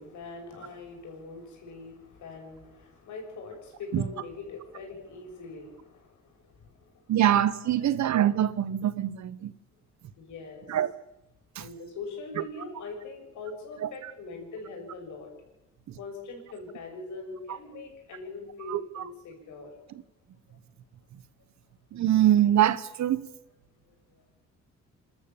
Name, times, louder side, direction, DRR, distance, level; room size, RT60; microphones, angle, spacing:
voice 1, 0.0-6.9 7.6-7.9 10.2-10.7 11.6-15.3 15.9-19.8, left 3 dB, 75° left, 2 dB, 6.6 m, -42 dB
voice 2, 7.1-9.5 10.7-10.9 11.5-11.7 13.8-13.9 17.5-17.6 18.7-19.0 21.9-23.3, right 11 dB, 65° right, 15 dB, 1.2 m, -24 dB
27.5 x 13.0 x 7.2 m, 0.92 s
cardioid pair, 90°, 30 cm